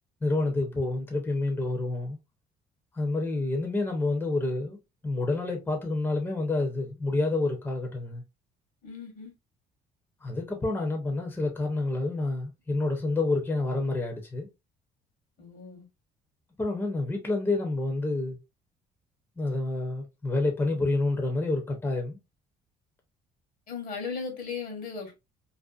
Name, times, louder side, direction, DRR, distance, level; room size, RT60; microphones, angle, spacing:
voice 1, 0.2-2.2 2.9-4.8 5.0-8.2 10.2-14.5 16.6-18.4 19.4-22.2, left 2 dB, 15° left, 0.6 m, -28 dB
voice 2, 8.8-9.3 15.4-15.9 23.7-25.1, left 5 dB, 60° left, 1.0 m, -37 dB
2.5 x 2.1 x 2.3 m
cardioid pair, 110°, 17 cm